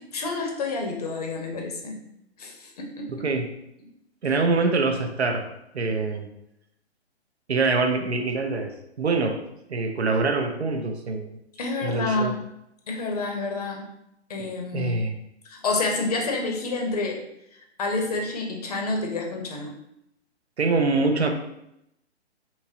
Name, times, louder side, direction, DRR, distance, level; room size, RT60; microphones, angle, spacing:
voice 1, 0.0-2.0 2.4-3.2 11.6-12.4 12.9-13.8 14.3-15.0 15.4-17.2 17.8-19.7, left 3 dB, 35° left, 1 dB, 0.6 m, -28 dB
voice 2, 3.1-3.5 4.2-5.5 5.7-6.3 7.5-9.4 9.7-11.4 11.8-12.4 14.4-15.2 20.6-21.3, right 3 dB, 70° right, 5 dB, 0.6 m, -25 dB
3.6 x 3.0 x 2.6 m, 0.81 s
figure-of-eight pair, 130°, 34 cm